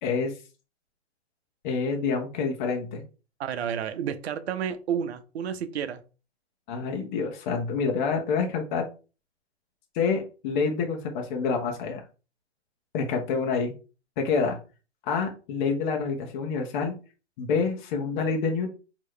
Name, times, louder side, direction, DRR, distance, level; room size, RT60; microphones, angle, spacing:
voice 1, 0.0-0.3 1.6-3.0 6.7-8.8 9.9-12.0 12.9-13.7 14.2-14.6 15.1-17.0 17.4-18.7, left 5 dB, 45° left, 1.1 m, -27 dB
voice 2, 3.4-6.0, right 8 dB, 65° right, 0.8 m, -31 dB
4.6 x 3.0 x 3.2 m
hypercardioid pair, 135°, 34 cm